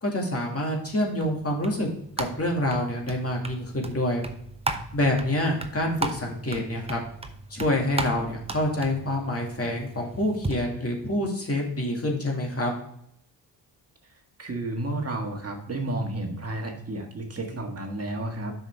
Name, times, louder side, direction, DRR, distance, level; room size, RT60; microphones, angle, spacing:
voice 1, 0.0-1.9 2.2-4.2 4.9-7.0 7.5-12.7, left 1 dB, 35° left, 0 dB, 2.3 m, -27 dB
sound 1, 0.9-10.5, right 2 dB, 15° right, 0.8 m, -36 dB
voice 2, 14.4-18.5, right 2 dB, 35° right, 2 dB, 1.6 m, -31 dB
7.3 x 5.9 x 3.5 m, 0.71 s
cardioid pair, 80°, 42 cm